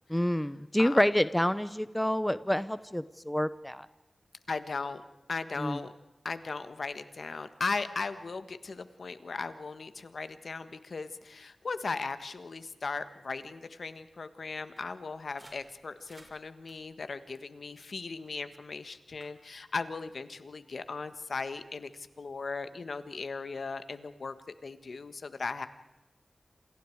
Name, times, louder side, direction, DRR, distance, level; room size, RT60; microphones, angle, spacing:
voice 1, 0.1-3.9 5.6-5.8, equal, 10° left, 14 dB, 0.8 m, -28 dB
voice 2, 4.5-5.0 5.3-5.9 6.2-24.3 24.6-25.7, left 4 dB, 80° left, 11 dB, 1.5 m, -37 dB
sound 1, 14.8-18.4 18.8-19.3, right 1 dB, 30° right, 5.5 m, -60 dB
28.5 x 28.0 x 4.8 m, 1.0 s
wide cardioid pair, 85°, 0 cm